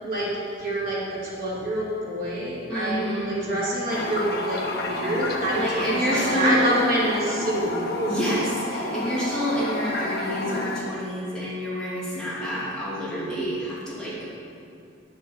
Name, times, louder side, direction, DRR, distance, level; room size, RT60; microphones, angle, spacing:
voice 1, 0.6-8.2, right 1 dB, 45° right, -8 dB, 3.2 m, -27 dB
voice 2, 2.7-3.4 5.5-6.6 8.1-14.3, equal, 5° left, -10 dB, 2.7 m, -28 dB
Toilet flush, 3.9-10.8, left 2 dB, 50° left, 1.1 m, -30 dB
10.0 x 6.7 x 7.5 m, 2.4 s
head